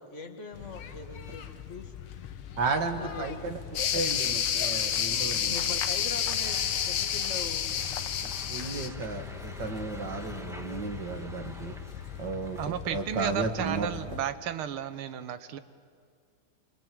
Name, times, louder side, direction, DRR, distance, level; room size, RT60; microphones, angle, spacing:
voice 1, 0.0-1.9 2.7-3.5 5.5-7.7, left 4 dB, 35° left, 4 dB, 2.1 m, -42 dB
sound 1, 0.5-14.2, left 9 dB, 80° left, 2.0 m, -42 dB
voice 2, 2.6-3.6 3.9-5.8 8.2-11.7 12.2-13.9, right 4 dB, 60° right, 6 dB, 2.3 m, -34 dB
sound 2, 3.7-8.9, left 9 dB, 60° left, 1.5 m, -29 dB
sound 3, 6.4-13.1, equal, ahead, 1.2 m, -48 dB
voice 3, 12.6-15.6, right 9 dB, 90° right, 12 dB, 1.8 m, -33 dB
26.0 x 25.0 x 7.7 m, 2.1 s
omnidirectional pair, 2.3 m